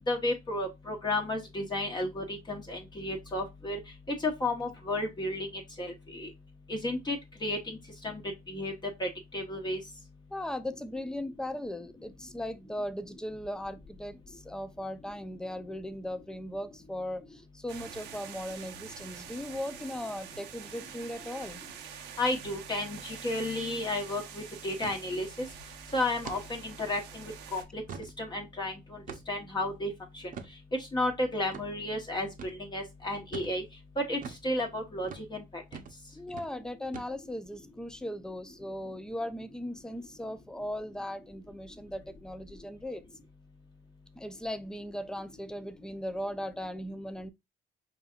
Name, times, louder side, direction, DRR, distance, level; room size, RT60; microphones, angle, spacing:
voice 1, 0.1-3.8 4.2-6.3 6.7-7.8 8.0-8.2 8.5-8.7 9.0-9.8 22.2-25.5 25.9-27.8 28.2-29.0 29.3-30.2 30.9-33.6 34.0-35.6, left 1 dB, 25° left, 1.0 m, -33 dB
voice 2, 10.3-21.6 36.1-43.0 44.2-47.3, left 1 dB, 5° left, 0.5 m, -38 dB
sound 1, 17.7-27.6, right 9 dB, 85° right, 0.8 m, -46 dB
sound 2, 22.9-23.1 23.4-23.5 23.8-24.1 24.8-25.0 25.5-25.6 26.2-26.5 27.0-27.1 27.6-28.2 29.1-29.4 30.3-30.5 31.5-31.7 32.4-32.6 33.3-33.6 34.2-34.5 35.0-35.3 35.7-36.0 36.3-36.5 36.9-37.4, right 6 dB, 50° right, 0.8 m, -43 dB
5.4 x 2.7 x 2.4 m
cardioid pair, 115°, 17 cm